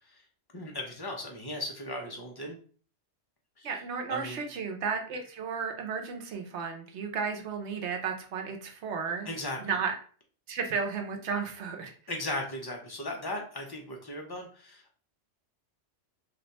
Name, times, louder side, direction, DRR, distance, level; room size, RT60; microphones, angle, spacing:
voice 1, 0.5-2.6 3.6-3.7 4.1-4.4 9.3-9.6 12.1-15.0, left 1 dB, 30° left, 0 dB, 0.5 m, -37 dB
voice 2, 3.6-9.3 9.6-9.9 10.5-11.9, right 5 dB, 75° right, 3 dB, 1.0 m, -33 dB
2.5 x 2.2 x 4.0 m, 0.42 s
omnidirectional pair, 1.2 m